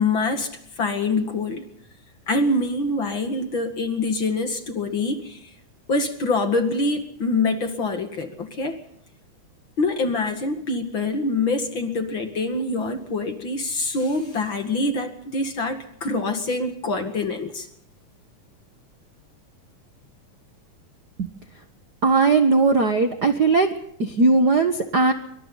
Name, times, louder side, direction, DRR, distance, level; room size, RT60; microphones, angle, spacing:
voice 1, 0.0-1.6 2.3-5.5 5.9-8.8 9.8-17.7, left 3 dB, 40° left, 7 dB, 2.4 m, -25 dB
voice 2, 22.0-23.7 24.0-25.1, right 3 dB, 45° right, 7 dB, 1.3 m, -18 dB
26.0 x 24.5 x 4.0 m, 0.69 s
omnidirectional pair, 3.7 m